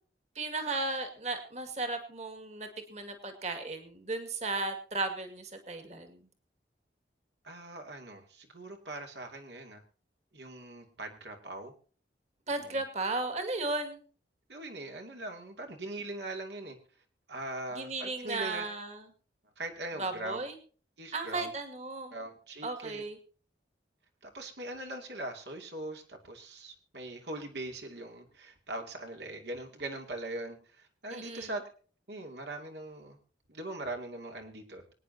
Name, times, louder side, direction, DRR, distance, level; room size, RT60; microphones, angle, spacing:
voice 1, 0.4-6.2 12.5-14.0 17.8-19.0 20.0-20.6 21.1-22.1 22.6-23.2 31.1-31.5, right 3 dB, 40° right, 6 dB, 2.0 m, -35 dB
voice 2, 7.4-9.8 10.3-11.7 12.6-12.8 14.5-16.8 17.3-18.7 19.6-20.4 21.0-21.5 22.1-23.0 24.2-31.6 32.1-33.2 33.5-34.8, right 2 dB, 75° right, 3 dB, 2.6 m, -41 dB
24.5 x 9.5 x 2.8 m, 0.40 s
head